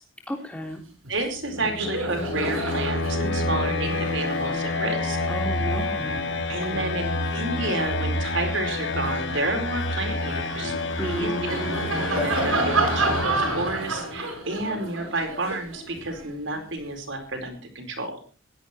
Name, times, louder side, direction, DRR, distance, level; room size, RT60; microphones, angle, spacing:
voice 1, 0.3-0.8 5.3-6.1 6.6-6.9 11.0-12.0, equal, 5° left, 2 dB, 3.5 m, -32 dB
Laughter, 1.0-1.2 1.5-8.2 8.7-16.9, right 2 dB, 75° right, 7.2 m, -31 dB
voice 2, 1.1-5.2 6.5-10.7 11.0-18.1, right 2 dB, 60° right, 4 dB, 4.6 m, -30 dB
sound 1, 1.3-14.2, left 2 dB, 55° left, 2.0 m, -29 dB
17.0 x 12.5 x 4.5 m, 0.37 s
head